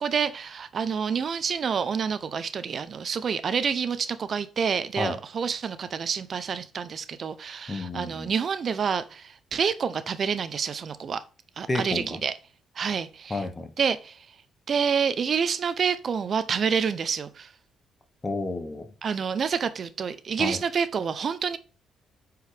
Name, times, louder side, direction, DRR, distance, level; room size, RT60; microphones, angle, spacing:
voice 1, 0.0-11.2 11.6-12.3 12.8-13.4 13.8-14.3 14.7-17.5 19.0-21.6, right 6 dB, 50° right, 0.5 m, -28 dB
voice 2, 7.7-8.3 11.7-12.2 13.3-13.7 18.2-18.9 20.4-20.6, left 2 dB, 25° left, 1.2 m, -31 dB
8.0 x 4.7 x 3.4 m
cardioid pair, 90°, 0 cm